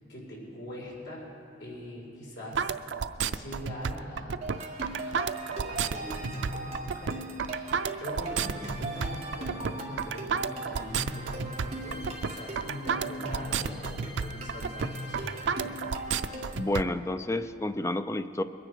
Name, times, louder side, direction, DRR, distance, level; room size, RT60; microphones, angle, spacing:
voice 1, 0.1-1.3 1.6-2.7 3.2-4.8 5.0-5.2 5.5-7.3 8.0-15.8, equal, 75° left, -4 dB, 4.4 m, -42 dB
sound 1, 2.5-16.8, right 6 dB, 90° right, 0.4 m, -31 dB
sound 2, 4.4-16.7, right 1 dB, 35° right, 1.9 m, -39 dB
voice 2, 16.5-18.4, left 1 dB, 15° left, 10 dB, 0.4 m, -30 dB
22.0 x 9.8 x 5.0 m, 2.7 s
head